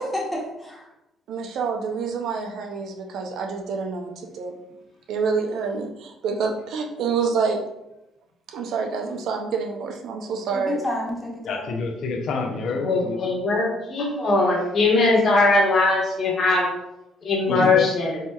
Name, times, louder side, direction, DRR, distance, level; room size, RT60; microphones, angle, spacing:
voice 1, 0.1-0.8 10.5-11.7 17.5-17.8, left 1 dB, 5° left, -4 dB, 1.4 m, -30 dB
voice 2, 1.3-4.5 5.1-7.6 8.5-10.8, right 5 dB, 70° right, 3 dB, 0.5 m, -27 dB
voice 3, 11.4-13.2 17.5-17.9, left 4 dB, 65° left, 2 dB, 0.6 m, -28 dB
voice 4, 12.7-16.7 17.2-18.2, left 3 dB, 50° left, -2 dB, 1.2 m, -20 dB
4.2 x 2.8 x 2.3 m, 0.89 s
supercardioid pair, 70°, 0 cm